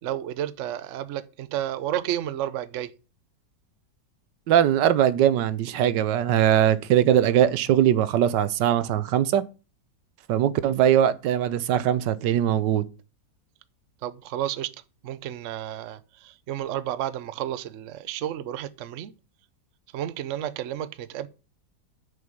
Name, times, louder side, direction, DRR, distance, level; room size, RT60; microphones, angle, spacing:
voice 1, 0.0-2.9 14.0-14.7 15.0-19.1 19.9-21.3, right 11 dB, 60° right, 0.9 m, -31 dB
voice 2, 4.5-9.4 10.3-12.8, right 10 dB, 85° right, 1.4 m, -21 dB
6.6 x 5.2 x 7.1 m
omnidirectional pair, 1.8 m